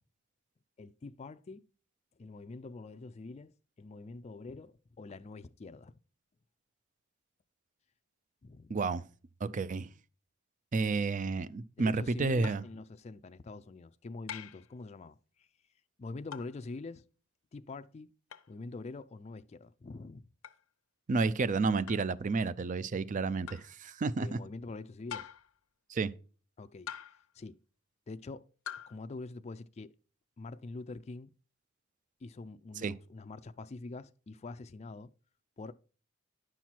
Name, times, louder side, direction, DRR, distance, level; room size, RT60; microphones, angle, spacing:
voice 1, 0.8-1.6 2.2-5.9 8.4-8.8 11.8-15.5 16.0-17.0 17.5-18.1 18.5-20.3 24.2-25.3 26.6-26.9 27.3-27.6 28.1-28.5 28.9-29.9 30.4-31.3 32.2-35.1 35.6-35.7, left 3 dB, 30° left, 0.4 m, -45 dB
voice 2, 8.7-9.0 9.4-9.9 10.7-12.6 21.1-24.4 25.9-26.1 32.8-32.9, right 4 dB, 40° right, 0.4 m, -31 dB
sound 1, 12.4-12.8 14.3-14.7 16.3-16.6 18.3-18.5 20.4-20.6 21.9-22.1 23.5-23.7 25.1-25.6 26.9-27.3 28.7-29.0, left 9 dB, 85° left, 0.7 m, -44 dB
10.0 x 5.8 x 4.5 m
head